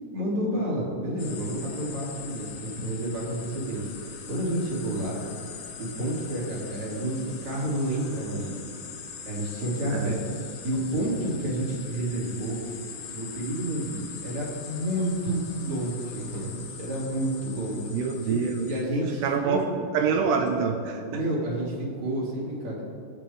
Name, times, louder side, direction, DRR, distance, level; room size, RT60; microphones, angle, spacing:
voice 1, 0.1-5.2 5.8-8.7 9.3-10.2 10.6-12.7 13.1-17.9 18.6-19.6 21.1-22.8, right 1 dB, 40° right, -5 dB, 3.7 m, -30 dB
sound 1, 1.2-18.8, left 6 dB, 85° left, 3.8 m, -42 dB
voice 2, 17.9-18.7 19.2-19.7 19.9-21.2, right 5 dB, 80° right, 3 dB, 2.7 m, -26 dB
23.0 x 8.5 x 3.6 m, 2.5 s
omnidirectional pair, 5.4 m